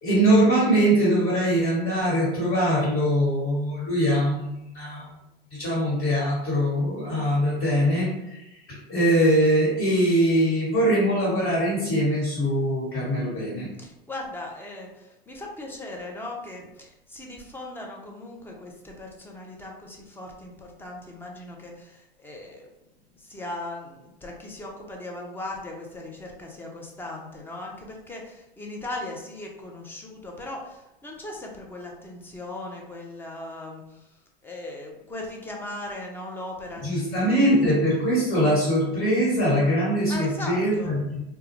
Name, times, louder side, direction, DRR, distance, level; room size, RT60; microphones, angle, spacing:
voice 1, 0.0-5.1 5.5-13.7 36.8-41.2, equal, 45° left, -7 dB, 1.3 m, -22 dB
voice 2, 13.8-22.7 23.1-34.1 34.4-37.8 40.1-40.9, left 2 dB, 5° left, 0 dB, 0.4 m, -38 dB
2.2 x 2.1 x 3.0 m, 0.89 s
hypercardioid pair, 100°, 30 cm